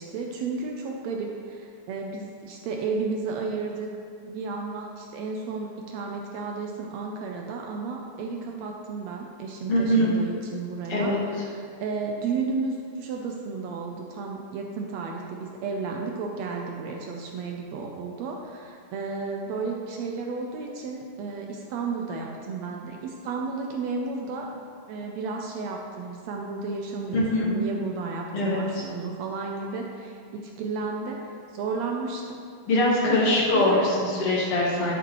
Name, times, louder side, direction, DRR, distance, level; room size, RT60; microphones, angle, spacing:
voice 1, 0.0-3.9 4.2-24.5 24.9-32.4 33.0-33.9, right 4 dB, 80° right, 1 dB, 1.5 m, -33 dB
voice 2, 9.7-10.1 10.9-11.2 27.1-27.5 28.3-28.8 32.7-33.7 34.0-34.9, left 1 dB, 55° left, -4 dB, 2.0 m, -23 dB
12.0 x 7.7 x 3.0 m, 2.2 s
omnidirectional pair, 3.8 m